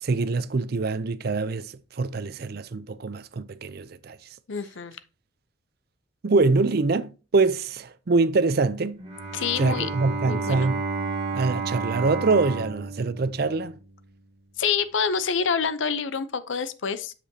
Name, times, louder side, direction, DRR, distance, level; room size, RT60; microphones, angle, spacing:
voice 1, 0.0-4.2 6.2-9.0 9.6-10.8 11.3-13.8, right 3 dB, 55° right, 0.5 m, -24 dB
voice 2, 4.5-5.0 9.3-9.9 10.3-10.7 14.6-17.1, left 6 dB, 80° left, 0.6 m, -27 dB
Bowed string instrument, 9.0-14.0, right 4 dB, 35° right, 1.6 m, -31 dB
8.1 x 6.9 x 2.8 m
head